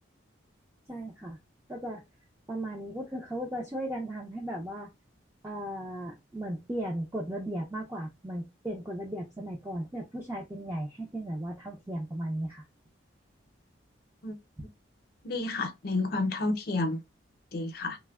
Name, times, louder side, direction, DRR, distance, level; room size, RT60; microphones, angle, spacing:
voice 1, 0.9-1.4 1.7-2.0 2.5-4.9 5.4-12.7, right 1 dB, 15° right, 0.4 m, -36 dB
voice 2, 15.2-17.0 17.5-18.0, left 2 dB, 50° left, 0.5 m, -30 dB
3.1 x 2.0 x 2.3 m
head